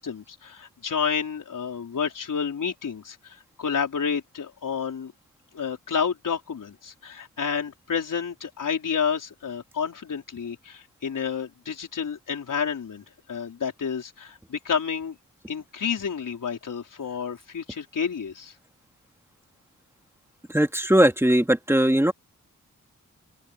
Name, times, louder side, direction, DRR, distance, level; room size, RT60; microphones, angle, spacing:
voice 1, 0.0-5.1 5.5-15.2 15.5-18.5, left 6 dB, 80° left, 4.8 m, -30 dB
voice 2, 20.5-22.1, right 1 dB, 10° right, 2.5 m, -19 dB
open air
wide cardioid pair, 75°, 31 cm